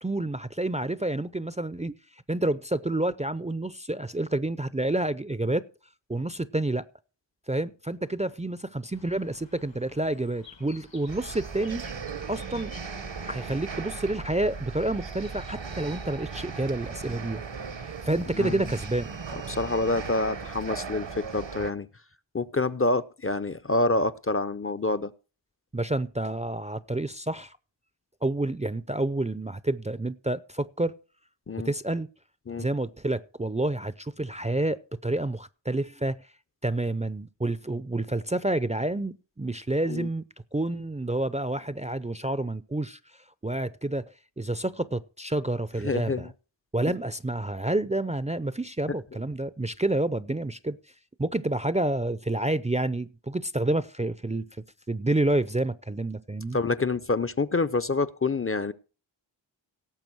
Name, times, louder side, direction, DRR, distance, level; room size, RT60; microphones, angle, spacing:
voice 1, 0.0-1.9 2.3-5.7 6.1-6.8 7.5-11.8 12.3-12.7 13.2-17.4 17.8-19.2 25.7-27.6 28.2-30.9 31.6-32.1 32.6-36.2 36.6-40.2 40.5-43.0 43.4-44.0 44.4-46.3 46.7-50.8 51.2-54.5 54.9-56.6, right 2 dB, 15° right, 0.5 m, -29 dB
Bird, 8.9-16.1, left 4 dB, 75° left, 2.8 m, -54 dB
sound 1, 11.1-21.7, right 5 dB, 70° right, 1.2 m, -38 dB
voice 2, 18.4-18.7 19.5-21.9 22.3-25.1 31.5-31.7 32.5-32.7 39.9-40.1 45.8-46.3 56.5-58.7, left 3 dB, 30° left, 0.6 m, -27 dB
17.5 x 7.1 x 4.6 m
wide cardioid pair, 45°, 45 cm